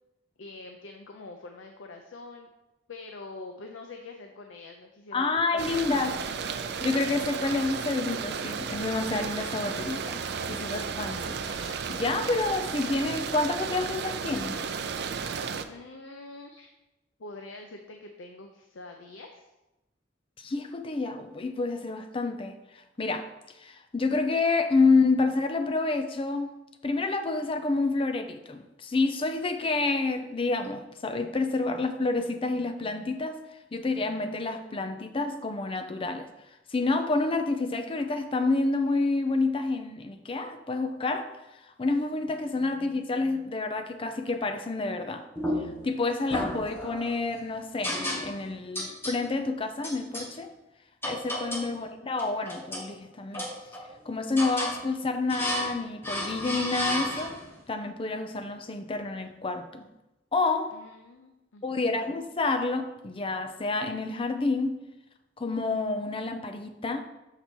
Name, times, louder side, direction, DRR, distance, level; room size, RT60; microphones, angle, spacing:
voice 1, 0.4-2.5 2.9-5.3 5.5-6.1 15.7-16.7 17.2-19.5 51.6-51.9 60.7-61.8, left 3 dB, 75° left, 0.6 m, -45 dB
voice 2, 5.1-6.2 6.8-14.7 20.4-23.3 23.5-26.5 26.8-33.4 33.7-36.3 36.7-45.3 45.8-50.5 51.0-53.5 54.1-57.4 57.7-59.8 60.3-60.7 61.6-64.8 65.4-67.0, left 3 dB, 30° left, 0.5 m, -29 dB
sound 1, 5.6-15.6, right 6 dB, 55° right, 0.4 m, -33 dB
sound 2, 45.4-45.9 46.3-47.2 47.8-48.5 48.7-49.2 49.8-50.3 51.0-51.7 52.1-52.9 53.3-54.0 54.4-54.8 55.3-55.8 56.0-57.5, left 1 dB, 10° left, 1.0 m, -33 dB
6.8 x 4.4 x 4.4 m
head